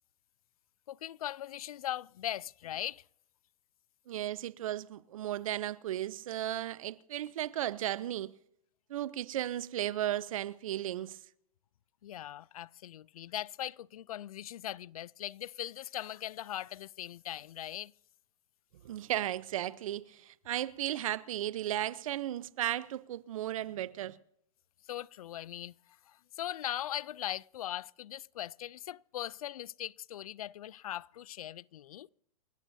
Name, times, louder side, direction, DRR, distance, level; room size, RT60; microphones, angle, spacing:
voice 1, 0.9-3.0 12.0-17.9 24.9-25.7 26.1-32.1, left 12 dB, 85° left, 0.4 m, -40 dB
voice 2, 4.1-8.3 8.9-11.2 18.8-24.2, right 12 dB, 70° right, 0.8 m, -35 dB
29.0 x 13.5 x 2.7 m
hypercardioid pair, 145°, 18 cm